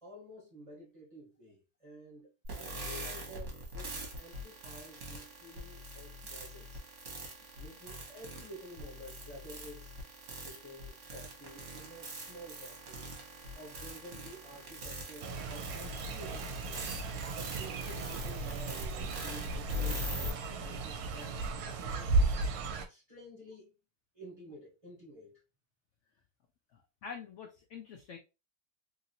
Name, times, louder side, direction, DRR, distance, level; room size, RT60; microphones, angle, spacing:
voice 1, 0.0-6.8 7.5-9.9 10.3-13.1 13.5-16.9 17.3-21.4 21.8-22.5 22.9-23.7 24.1-25.4, equal, 25° right, 0.9 m, -51 dB
sound 1, 2.4-20.3, equal, 50° right, 1.2 m, -42 dB
Fowl, 15.2-22.9, right 2 dB, 75° right, 1.1 m, -35 dB
voice 2, 26.7-28.2, left 6 dB, 75° left, 0.7 m, -46 dB
3.0 x 2.6 x 2.7 m
omnidirectional pair, 1.7 m